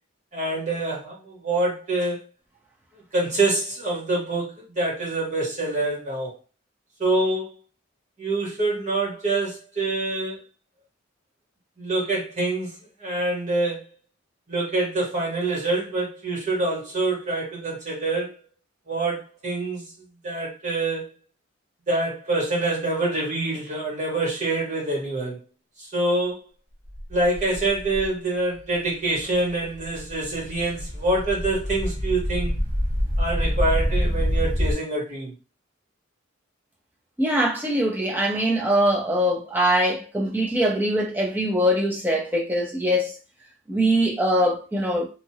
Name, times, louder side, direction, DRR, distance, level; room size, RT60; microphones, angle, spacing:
voice 1, 0.3-2.2 3.1-6.3 7.0-7.6 8.2-10.4 11.8-12.7 13.0-13.9 14.5-18.4 18.9-19.9 20.2-21.1 21.9-25.4 25.9-26.4 27.1-32.6 33.2-35.3, right 2 dB, 40° right, 1.4 m, -26 dB
sound 1, 26.9-28.1 28.7-28.9 29.1-34.7, equal, 60° right, 1.2 m, -26 dB
voice 2, 37.2-43.1 43.7-45.1, equal, 10° right, 0.7 m, -22 dB
3.0 x 2.5 x 2.8 m
head